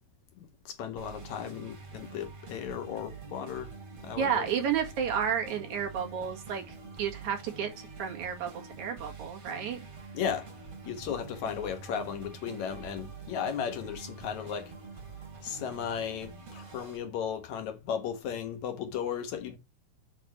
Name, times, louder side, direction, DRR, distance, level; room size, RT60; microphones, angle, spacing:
voice 1, 0.4-3.7 4.0-4.5 10.1-10.5 10.9-14.7 15.4-19.6, left 8 dB, 65° left, 2.3 m, -35 dB
sound 1, 1.0-17.0, right 4 dB, 45° right, 3.5 m, -46 dB
voice 2, 4.2-8.5 8.8-9.8, right 8 dB, 65° right, 3.3 m, -31 dB
7.2 x 4.3 x 6.0 m
omnidirectional pair, 3.7 m